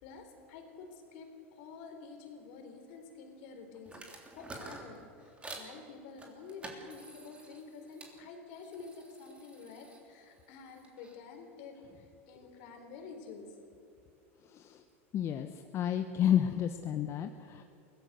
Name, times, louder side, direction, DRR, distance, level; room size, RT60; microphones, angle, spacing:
voice 1, 0.0-5.3 5.5-13.5, left 4 dB, 60° left, 4 dB, 4.0 m, -49 dB
sound 1, 3.9-5.7 6.2-8.1 8.5-11.2, right 2 dB, 15° right, 3.5 m, -50 dB
voice 2, 15.1-15.5 15.7-17.6, left 10 dB, 40° left, 7 dB, 1.0 m, -30 dB
22.5 x 16.5 x 6.9 m, 2.7 s
hypercardioid pair, 105°, 7 cm